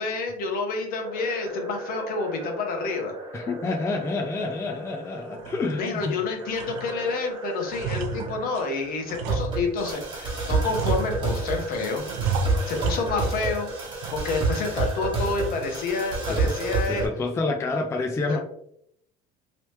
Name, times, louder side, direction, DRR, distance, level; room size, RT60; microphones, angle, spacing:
voice 1, 0.0-3.1 5.8-12.0 12.7-13.7 14.2-17.1 18.3-18.4, left 4 dB, 55° left, 3 dB, 1.0 m, -29 dB
sound 1, 1.0-17.1, right 3 dB, 25° right, 1.4 m, -31 dB
voice 2, 3.3-6.2 16.3-16.6 16.9-18.4, left 3 dB, 15° left, 3 dB, 0.4 m, -28 dB
sound 2, 4.1-4.2 4.7-4.8 5.3-6.2 6.5-7.2 7.5-10.1 10.6-11.5 12.0-13.5 13.8-14.5 14.8-14.9 15.4-15.8, right 4 dB, 85° right, 0.5 m, -33 dB
3.1 x 2.8 x 3.2 m, 0.70 s
cardioid pair, 115°, 17 cm